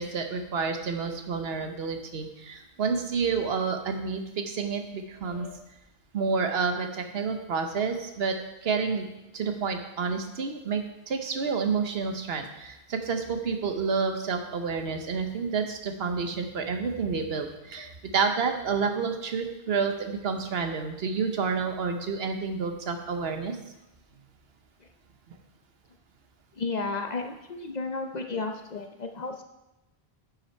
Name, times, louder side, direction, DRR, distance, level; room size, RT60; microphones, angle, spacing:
voice 1, 0.0-5.5 6.1-8.4 8.6-9.1 9.3-23.6, right 5 dB, 70° right, 5 dB, 1.1 m, -29 dB
voice 2, 5.2-5.6 17.8-17.9 24.8-24.9 26.5-29.4, left 3 dB, 50° left, 5 dB, 0.7 m, -33 dB
10.0 x 6.0 x 4.4 m, 0.97 s
omnidirectional pair, 1.1 m